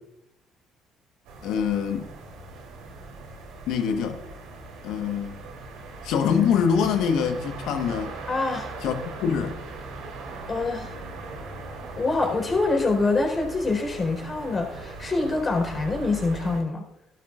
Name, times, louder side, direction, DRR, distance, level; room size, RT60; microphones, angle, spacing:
sound 1, 1.2-16.6, right 2 dB, 75° right, 3.2 m, -39 dB
voice 1, 1.4-2.1 3.7-4.2 4.8-5.4 6.0-8.1 8.8-9.6, left 7 dB, 70° left, 1.3 m, -24 dB
voice 2, 8.3-8.7 10.5-11.0 12.0-16.8, left 3 dB, 35° left, 4.4 m, -25 dB
17.5 x 12.0 x 2.5 m
hypercardioid pair, 55°, 0 cm